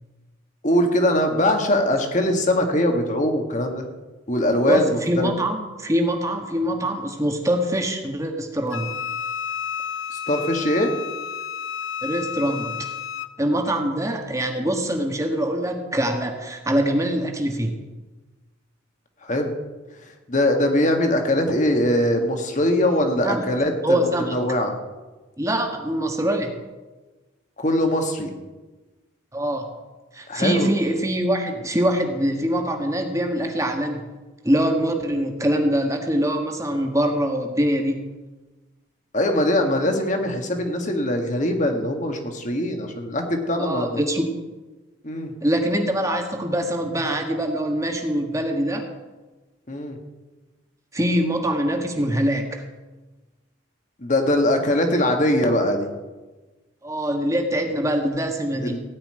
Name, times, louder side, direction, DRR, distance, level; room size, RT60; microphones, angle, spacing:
voice 1, 0.6-3.9 4.3-5.3 10.1-10.9 19.2-19.5 20.3-24.8 27.6-28.3 30.3-30.7 39.1-44.0 45.0-45.3 49.7-50.0 54.0-55.9 58.6-58.8, left 1 dB, 35° left, 4 dB, 1.9 m, -22 dB
voice 2, 4.7-8.9 12.0-12.9 13.4-17.7 23.2-23.4 23.8-24.3 25.4-26.5 29.3-29.7 30.1-34.0 34.4-38.0 43.6-44.3 45.4-48.9 50.9-52.6 56.8-58.8, right 1 dB, 15° right, 4 dB, 1.5 m, -23 dB
Wind instrument woodwind instrument, 8.7-13.3, left 8 dB, 75° left, 0.8 m, -31 dB
17.0 x 5.8 x 9.9 m, 1.2 s
head